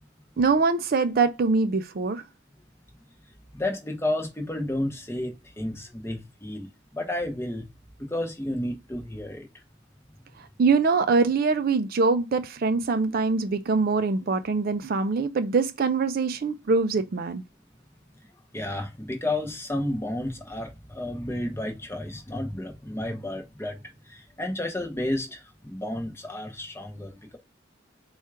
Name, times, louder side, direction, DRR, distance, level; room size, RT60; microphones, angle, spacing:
voice 1, 0.4-2.2 10.4-17.4, right 4 dB, 50° right, 0.4 m, -23 dB
voice 2, 3.5-6.7 6.9-7.7 8.1-9.5 18.5-23.8 24.1-27.4, left 1 dB, 15° left, 0.7 m, -31 dB
4.3 x 2.4 x 4.5 m
head